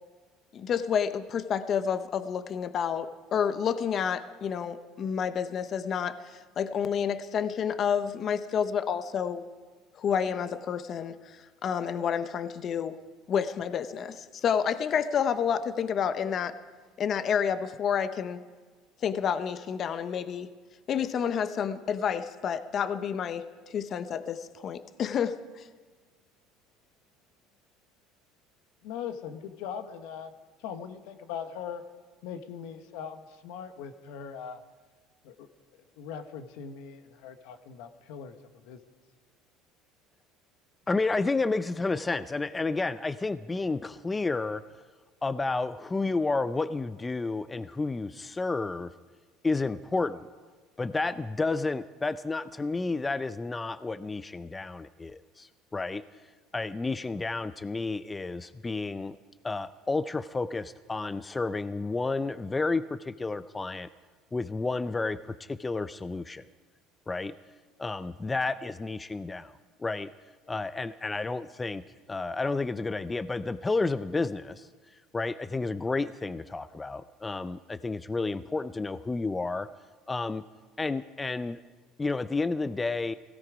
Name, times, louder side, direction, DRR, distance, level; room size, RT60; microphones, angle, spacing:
voice 1, 0.5-9.4 10.0-13.0 13.3-16.6 17.0-18.4 19.0-20.5 20.9-25.6, left 7 dB, 40° left, 12 dB, 0.7 m, -29 dB
voice 2, 28.8-30.3 30.6-31.8 32.2-34.6 35.2-35.5 36.0-38.4 38.6-38.8, left 7 dB, 75° left, 8 dB, 1.2 m, -40 dB
voice 3, 40.9-44.6 45.2-48.9 49.4-50.3 50.8-56.0 56.5-59.2 59.4-63.9 64.3-66.4 67.1-67.4 67.8-69.5 69.8-70.1 70.5-71.8 72.1-74.7 75.1-79.7 80.1-80.4 80.8-81.6 82.0-83.1, left 3 dB, 15° left, 14 dB, 0.4 m, -31 dB
17.0 x 16.5 x 5.0 m, 1.4 s
supercardioid pair, 115°, 0 cm